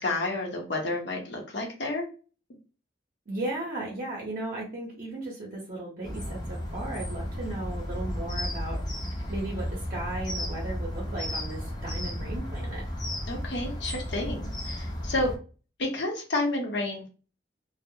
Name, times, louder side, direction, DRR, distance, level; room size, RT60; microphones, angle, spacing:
voice 1, 0.0-2.1 13.3-15.3 15.8-17.1, left 2 dB, 65° left, 1 dB, 0.7 m, -30 dB
voice 2, 3.3-8.8 9.3-12.8, right 2 dB, 45° right, -3 dB, 0.6 m, -36 dB
sound 1, 6.0-15.4, equal, 20° left, 0.5 m, -33 dB
2.3 x 2.0 x 2.6 m, 0.37 s
head